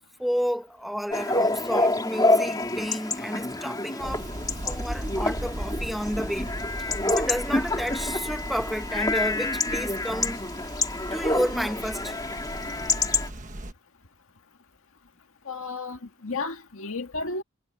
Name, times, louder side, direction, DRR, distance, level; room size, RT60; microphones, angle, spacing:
voice 1, 0.2-4.2 4.7-10.4 11.1-12.1 16.3-16.4, equal, ahead, 1.6 m, -31 dB
Chatter / Bark / Livestock farm animals working animals, 1.1-13.3, left 2 dB, 15° left, 2.7 m, -27 dB
sound 1, 4.0-13.7, right 1 dB, 35° right, 1.4 m, -37 dB
voice 2, 15.5-17.4, left 3 dB, 75° left, 1.8 m, -33 dB
head